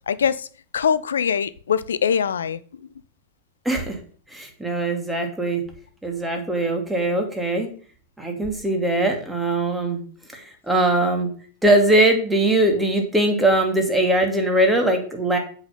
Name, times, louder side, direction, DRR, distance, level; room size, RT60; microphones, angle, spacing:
voice 1, 0.1-0.5 0.7-2.9, left 7 dB, 65° left, 0.6 m, -23 dB
voice 2, 3.6-4.0 4.3-5.6 6.0-7.7 8.2-10.0 10.3-11.3 11.6-15.4, right 1 dB, 5° right, 2.6 m, -21 dB
7.9 x 5.7 x 6.7 m
figure-of-eight pair, 90°, 0 cm